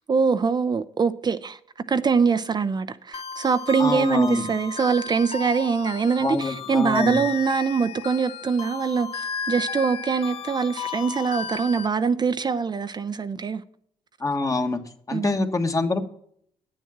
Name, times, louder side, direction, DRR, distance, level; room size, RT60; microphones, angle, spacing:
voice 1, 0.1-1.6 1.9-13.6 15.1-15.4, right 5 dB, 35° right, 0.6 m, -23 dB
sound 1, 3.1-11.9, left 5 dB, 55° left, 0.9 m, -34 dB
voice 2, 3.8-4.5 6.2-7.2 14.2-14.8 15.1-16.0, left 3 dB, 30° left, 1.5 m, -25 dB
9.2 x 7.3 x 5.8 m
supercardioid pair, 55°, 12 cm